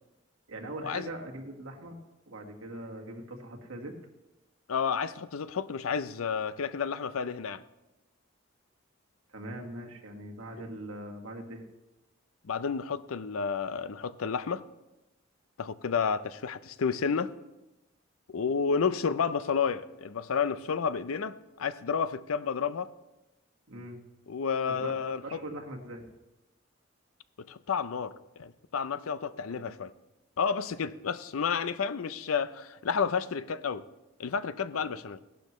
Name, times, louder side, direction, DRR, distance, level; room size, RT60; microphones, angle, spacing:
voice 1, 0.5-2.0 2.3-3.9 9.3-11.7 23.7-24.0 24.7-24.9 25.2-26.1 34.7-35.0, right 1 dB, 85° right, 1.6 m, -41 dB
voice 2, 4.7-7.6 12.4-14.6 15.6-17.3 18.3-22.9 24.3-25.4 27.5-29.9 30.4-33.8 34.2-35.2, left 6 dB, 85° left, 0.5 m, -31 dB
16.0 x 11.5 x 3.1 m
head